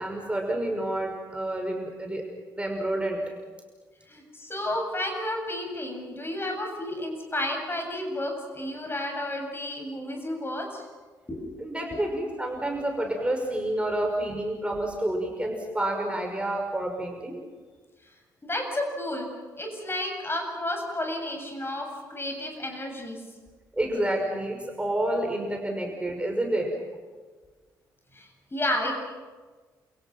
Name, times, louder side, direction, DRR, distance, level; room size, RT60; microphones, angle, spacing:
voice 1, 0.0-2.2 2.5-3.2 11.6-17.4 23.7-26.7, right 1 dB, 10° right, 2 dB, 5.9 m, -29 dB
voice 2, 4.1-10.8 11.3-11.5 11.9-12.1 18.4-19.3 19.6-23.2 25.8-25.9 28.1-28.9, left 1 dB, 25° left, 3 dB, 8.0 m, -32 dB
29.5 x 28.0 x 6.0 m, 1.4 s
figure-of-eight pair, 45°, 10 cm